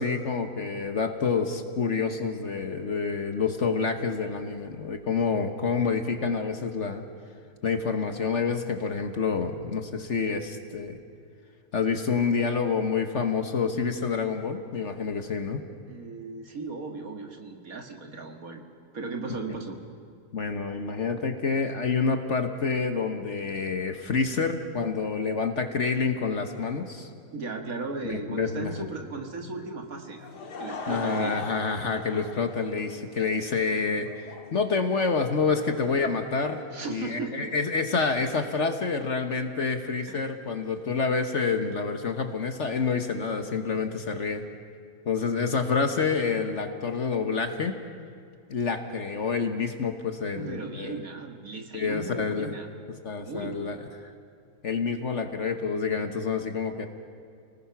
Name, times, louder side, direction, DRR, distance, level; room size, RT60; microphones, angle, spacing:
voice 1, 0.0-7.0 7.6-11.0 11.7-15.6 20.3-27.1 28.1-28.9 30.9-36.6 36.9-44.4 45.1-47.8 48.5-51.1 51.7-52.5 53.0-53.8 54.6-56.9, left 5 dB, 50° left, 7 dB, 1.4 m, -28 dB
voice 2, 15.9-18.6 18.9-19.8 27.3-30.3 30.6-31.4 36.7-37.5 40.0-40.3 50.3-52.7 53.2-53.7, right 3 dB, 60° right, 3 dB, 2.3 m, -36 dB
Laughter / Crowd, 30.0-37.0, left 4 dB, 85° left, 2.4 m, -41 dB
30.0 x 19.5 x 5.9 m, 2.3 s
omnidirectional pair, 1.7 m